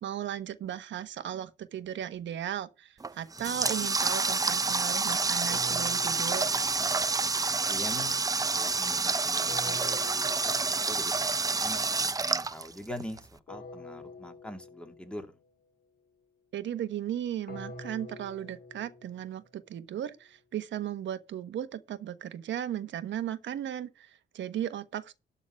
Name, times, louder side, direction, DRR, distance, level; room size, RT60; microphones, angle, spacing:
voice 1, 0.0-6.5 16.5-25.1, right 10 dB, 70° right, 1.3 m, -36 dB
Water tap faucet, 3.0-13.2, right 4 dB, 20° right, 0.6 m, -28 dB
sound 1, 5.5-7.5 9.5-11.3 13.5-15.3 17.5-19.7, left 2 dB, 50° left, 2.6 m, -47 dB
voice 2, 7.7-8.2 8.5-10.6 10.9-11.8 12.2-15.3, left 1 dB, 5° left, 2.4 m, -43 dB
12.0 x 4.1 x 7.5 m
cardioid pair, 90°, 20 cm